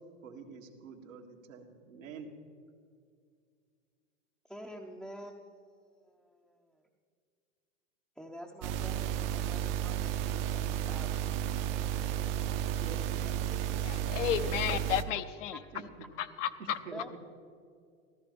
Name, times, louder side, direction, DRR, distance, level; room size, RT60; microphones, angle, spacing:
voice 1, 0.2-2.3 12.5-13.3 13.7-14.1 15.7-15.8 16.6-17.2, right 5 dB, 85° right, 1 dB, 1.8 m, -47 dB
voice 2, 4.5-5.7 6.0-6.8 8.2-11.3 15.5-15.6 16.9-17.2, equal, ahead, -2 dB, 0.6 m, -48 dB
sound 1, 8.6-15.0, right 11 dB, 45° right, 0.8 m, -33 dB
voice 3, 13.8-15.6 16.2-16.8, left 10 dB, 70° left, 12 dB, 0.9 m, -32 dB
14.0 x 13.5 x 5.2 m, 2.2 s
hypercardioid pair, 130°, 39 cm